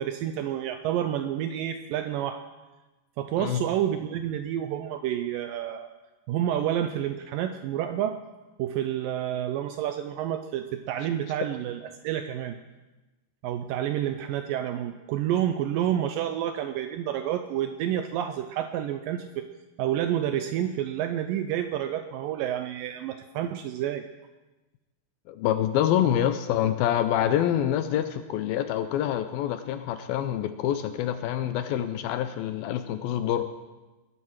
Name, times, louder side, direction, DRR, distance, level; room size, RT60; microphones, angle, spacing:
voice 1, 0.0-2.4 3.2-5.9 6.3-8.2 8.6-12.6 13.4-19.5 19.8-24.0, right 11 dB, 90° right, 8 dB, 1.9 m, -29 dB
voice 2, 25.3-33.5, left 11 dB, 80° left, 9 dB, 2.3 m, -26 dB
21.5 x 12.0 x 4.7 m, 1.1 s
omnidirectional pair, 4.7 m